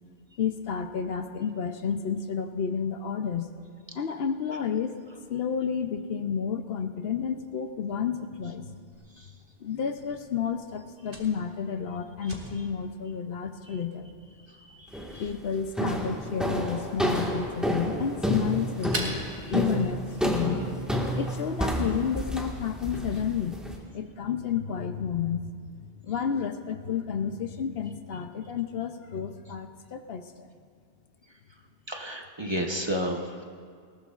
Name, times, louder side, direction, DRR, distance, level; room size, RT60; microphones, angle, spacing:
voice 1, 0.4-3.5 3.9-5.0 5.3-8.8 9.6-14.1 15.2-19.2 19.5-20.7 21.2-30.5, left 7 dB, 70° left, 7 dB, 0.9 m, -31 dB
Fire, 8.9-20.4, right 1 dB, 55° right, 2.3 m, -45 dB
voice 2, 14.8-15.2 19.4-19.5 31.9-33.4, equal, 25° right, 2 dB, 0.9 m, -32 dB
sound 1, 14.9-15.3 15.8-23.8, equal, ahead, 1.5 m, -29 dB
19.5 x 18.5 x 2.4 m, 2.1 s
omnidirectional pair, 1.1 m